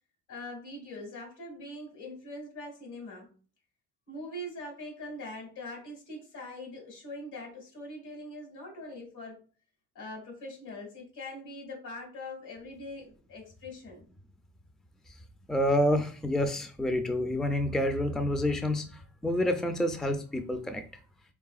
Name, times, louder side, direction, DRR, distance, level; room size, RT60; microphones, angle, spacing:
voice 1, 0.3-3.3 4.1-9.4 9.9-14.0, left 1 dB, 80° left, 1 dB, 2.1 m, -42 dB
voice 2, 15.5-20.8, left 1 dB, ahead, 7 dB, 0.5 m, -28 dB
4.8 x 3.3 x 2.4 m, 0.39 s
cardioid pair, 90°, 30 cm